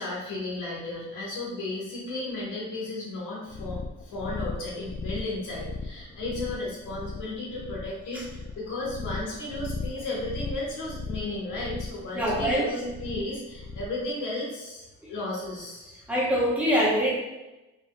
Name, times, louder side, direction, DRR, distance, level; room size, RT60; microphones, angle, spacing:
voice 1, 0.0-16.0, left 2 dB, 90° left, -5 dB, 1.4 m, -34 dB
sound 1, 3.5-14.0, left 3 dB, 30° left, 0.4 m, -37 dB
voice 2, 12.1-12.7 16.1-17.1, equal, 5° right, -7 dB, 1.3 m, -24 dB
4.1 x 3.3 x 2.4 m, 1.0 s
cardioid pair, 90°, 30 cm